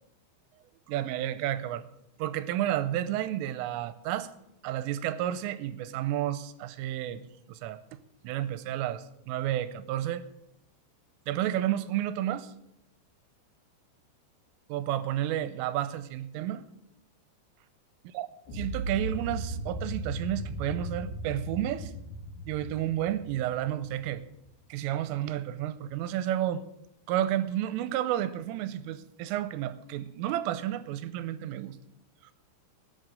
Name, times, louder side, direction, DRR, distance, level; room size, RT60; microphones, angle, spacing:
voice 1, 0.9-1.8 2.2-4.3 4.6-7.2 7.5-7.8 8.2-10.3 11.3-12.5 14.7-16.6 18.2-18.3 18.6-21.9 22.5-24.2 24.7-26.6 27.1-31.8, right 12 dB, 85° right, 13 dB, 3.2 m, -31 dB
sound 1, 18.5-24.5, right 1 dB, 60° left, 3.1 m, -37 dB
19.5 x 7.9 x 6.4 m, 0.79 s
omnidirectional pair, 6.0 m